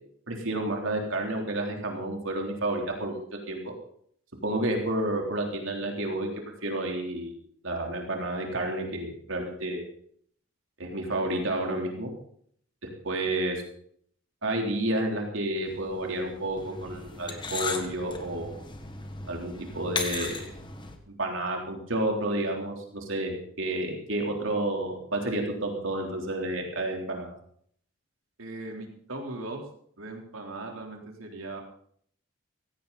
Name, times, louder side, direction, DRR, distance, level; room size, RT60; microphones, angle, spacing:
voice 1, 0.3-3.6 4.4-6.3 6.6-7.3 7.6-9.8 10.8-12.1 13.0-13.6 14.4-18.6 19.3-20.5 21.1-27.3, right 1 dB, 70° right, 1 dB, 3.6 m, -30 dB
sound 1, 15.7-21.0, left 4 dB, 20° left, 1.5 m, -37 dB
voice 2, 28.4-29.6 30.0-31.6, right 2 dB, 90° right, 2 dB, 3.7 m, -39 dB
16.5 x 16.5 x 4.1 m, 0.62 s
head